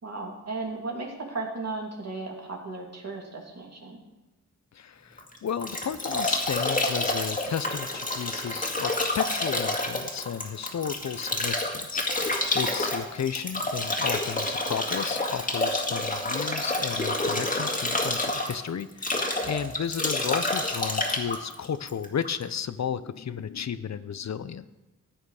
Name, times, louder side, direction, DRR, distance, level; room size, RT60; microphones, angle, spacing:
voice 1, 0.0-4.0 12.5-12.6, right 3 dB, 55° right, 0 dB, 2.7 m, -35 dB
voice 2, 4.7-24.7, left 8 dB, 60° left, 14 dB, 0.6 m, -33 dB
Bathtub (filling or washing) / Drip / Trickle dribble, 5.2-22.4, left 2 dB, 25° left, 1.9 m, -28 dB
14.5 x 9.2 x 4.8 m, 1.0 s
wide cardioid pair, 85°, 31 cm